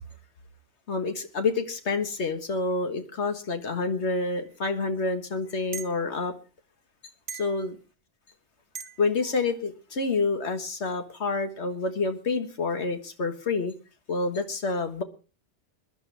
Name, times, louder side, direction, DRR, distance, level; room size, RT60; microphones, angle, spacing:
voice 1, 0.9-6.3 7.3-7.8 9.0-13.7 14.1-15.0, left 3 dB, 70° left, 7 dB, 1.8 m, -28 dB
sound 1, 5.7-6.0 7.3-7.6 8.7-9.0, right 6 dB, 65° right, 1.4 m, -38 dB
22.5 x 11.5 x 3.4 m, 0.33 s
omnidirectional pair, 1.2 m